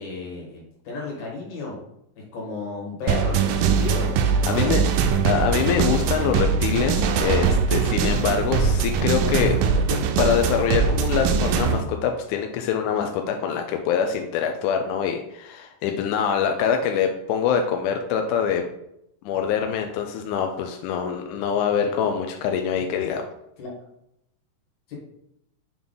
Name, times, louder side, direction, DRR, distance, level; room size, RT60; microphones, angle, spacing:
voice 1, 0.0-1.8 2.3-4.1 4.4-4.9 23.6-23.7, left 3 dB, 60° left, -3 dB, 2.9 m, -33 dB
sound 1, 3.1-11.8, right 6 dB, 85° right, 2.2 m, -21 dB
voice 2, 4.3-4.8 5.3-18.7 19.2-23.3, left 7 dB, 80° left, 4 dB, 1.8 m, -24 dB
7.1 x 3.6 x 3.8 m, 0.79 s
omnidirectional pair, 3.9 m